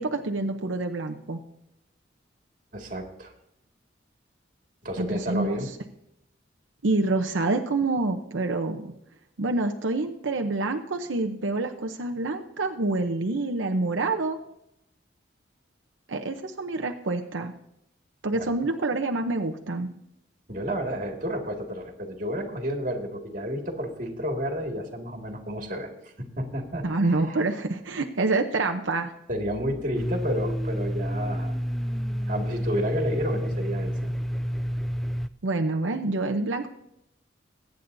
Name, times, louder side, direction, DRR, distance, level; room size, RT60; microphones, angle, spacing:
voice 1, 0.0-1.4 5.0-5.6 6.8-8.9 9.4-14.4 16.1-17.5 18.2-19.9 26.8-29.1 35.4-36.7, right 2 dB, 85° right, 4 dB, 0.8 m, -27 dB
voice 2, 2.7-3.3 4.8-5.7 18.3-18.5 20.5-27.4 29.3-31.6 32.3-34.1, equal, 45° right, 3 dB, 2.1 m, -31 dB
Domestic sounds home sounds, 29.9-35.3, equal, ahead, 0.3 m, -29 dB
21.5 x 9.3 x 2.7 m, 0.82 s
head